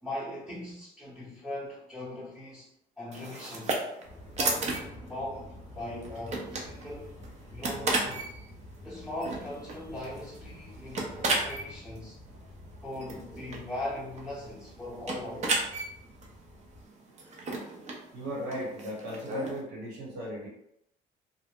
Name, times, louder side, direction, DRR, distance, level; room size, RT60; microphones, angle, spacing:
voice 1, 0.0-2.7 3.0-3.8 4.3-7.1 7.5-8.3 8.8-12.2 12.8-15.7, left 1 dB, ahead, -11 dB, 0.8 m, -39 dB
sound 1, 3.1-19.6, right 2 dB, 40° right, 0.6 m, -35 dB
Aircraft, 4.0-16.8, left 1 dB, 20° left, 0.5 m, -49 dB
voice 2, 18.1-20.5, equal, 85° right, -5 dB, 1.4 m, -36 dB
2.5 x 2.0 x 3.5 m, 0.79 s
cardioid pair, 110°, 17 cm